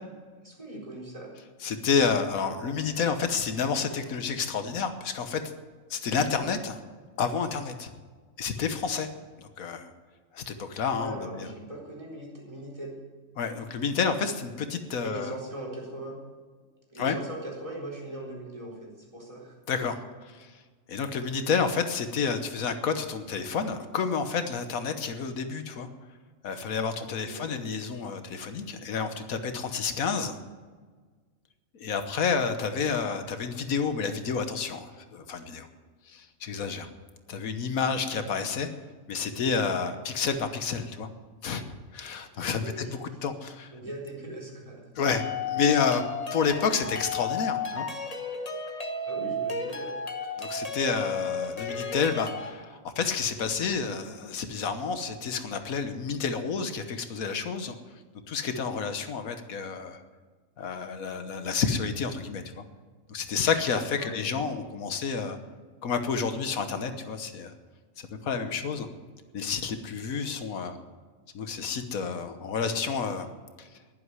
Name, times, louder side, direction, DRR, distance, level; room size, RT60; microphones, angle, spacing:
voice 1, 0.4-1.3 11.0-13.0 15.0-16.2 16.9-19.6 27.2-27.5 42.6-43.1 43.7-44.8 49.1-49.9 64.0-64.4, right 1 dB, 25° right, -2 dB, 4.2 m, -40 dB
voice 2, 1.6-5.4 5.9-6.8 7.2-7.9 8.4-9.1 9.4-9.9 10.3-11.5 13.4-15.3 17.0-17.2 19.7-20.0 20.4-20.5 20.9-25.9 26.4-30.4 31.8-35.7 36.1-36.9 37.3-38.7 39.1-41.1 41.4-41.6 41.9-43.7 45.0-46.0 46.3-47.9 50.4-57.7 58.3-60.0 60.6-62.6 63.1-65.4 65.8-67.5 68.2-68.9 69.3-70.8 71.3-73.3 73.6-73.7, left 5 dB, 90° left, 9 dB, 1.5 m, -29 dB
sound 1, 45.1-52.5, left 4 dB, 30° left, 1.2 m, -33 dB
11.5 x 10.5 x 9.7 m, 1.4 s
omnidirectional pair, 1.4 m